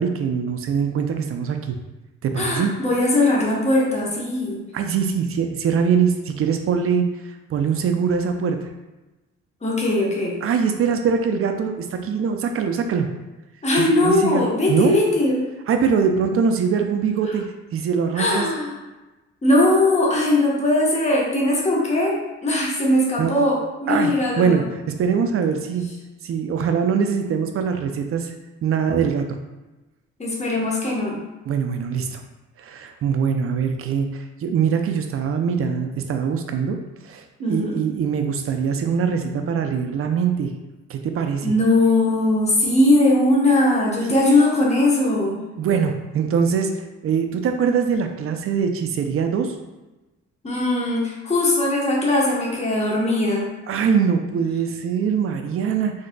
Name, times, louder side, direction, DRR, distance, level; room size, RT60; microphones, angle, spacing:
voice 1, 0.0-1.8 2.2-2.7 4.7-7.1 7.5-8.7 10.4-13.1 13.8-14.9 15.7-18.5 23.2-23.3 23.9-25.9 26.2-28.3 28.6-29.2 31.5-32.2 32.6-36.8 37.0-40.5 40.9-41.5 44.1-44.2 45.6-49.6 53.7-55.9, right 6 dB, 50° right, 5 dB, 0.4 m, -22 dB
voice 2, 2.4-4.6 9.6-10.4 13.6-15.5 17.3-17.4 18.2-18.7 19.4-24.6 30.2-31.2 37.4-37.7 41.4-45.4 50.4-53.5, left 1 dB, 20° left, -3 dB, 0.9 m, -20 dB
3.9 x 2.7 x 2.2 m, 1.1 s
cardioid pair, 90°, 30 cm